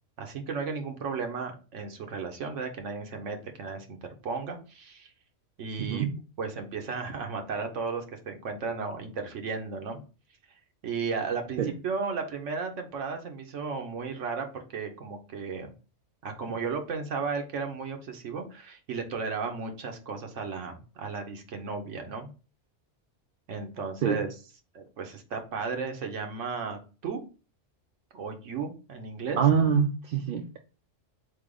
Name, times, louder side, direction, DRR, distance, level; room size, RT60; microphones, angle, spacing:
voice 1, 0.2-4.0 4.2-5.1 5.6-6.1 6.4-10.0 10.8-15.7 16.2-22.3 23.5-24.3 24.7-27.2 28.1-29.4, right 5 dB, 80° right, 4 dB, 1.1 m, -34 dB
voice 2, 29.4-30.6, right 7 dB, 60° right, 3 dB, 0.6 m, -24 dB
3.9 x 3.4 x 3.7 m, 0.34 s
omnidirectional pair, 1.2 m